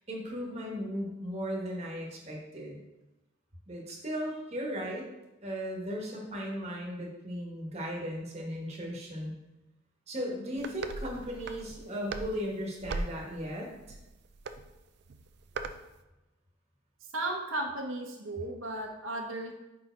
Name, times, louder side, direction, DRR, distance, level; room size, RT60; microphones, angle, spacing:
voice 1, 0.1-2.8 3.7-5.0 5.4-9.3 10.1-13.7, equal, 30° right, -2 dB, 1.3 m, -36 dB
sound 1, 10.6-15.8, right 3 dB, 55° right, 0.4 m, -40 dB
voice 2, 17.1-19.5, right 2 dB, 85° right, 0 dB, 1.1 m, -35 dB
5.5 x 4.7 x 4.5 m, 1.0 s
head